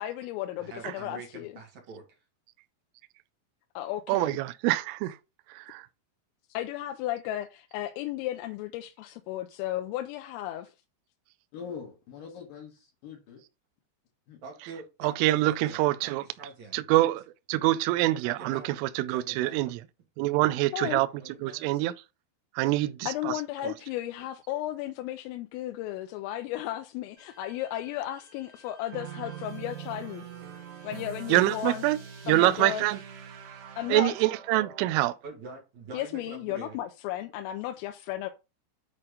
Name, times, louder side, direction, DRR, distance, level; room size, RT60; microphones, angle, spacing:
voice 1, 0.0-1.5 3.8-4.4 6.5-10.7 20.7-21.0 23.1-30.3 30.8-31.8 32.3-32.8 33.8-34.1 35.9-38.3, left 13 dB, 90° left, 3.3 m, -34 dB
voice 2, 0.6-2.2 14.4-15.1 15.4-16.8 18.2-18.8 19.1-19.7 21.2-21.7 35.2-36.8, right 4 dB, 50° right, 2.6 m, -45 dB
voice 3, 4.1-5.2 5.5-5.9 15.0-16.2 16.7-19.8 20.2-21.1 21.4-21.9 22.6-23.3 31.3-32.0 32.3-33.0 33.9-35.1, right 17 dB, 85° right, 3.0 m, -25 dB
voice 4, 11.5-13.4 14.3-14.4, left 6 dB, 60° left, 2.5 m, -43 dB
Bowed string instrument, 27.2-32.3, left 1 dB, 45° left, 1.3 m, -56 dB
sound 1, 28.9-35.1, right 9 dB, 70° right, 2.9 m, -43 dB
8.6 x 4.3 x 5.0 m
omnidirectional pair, 5.9 m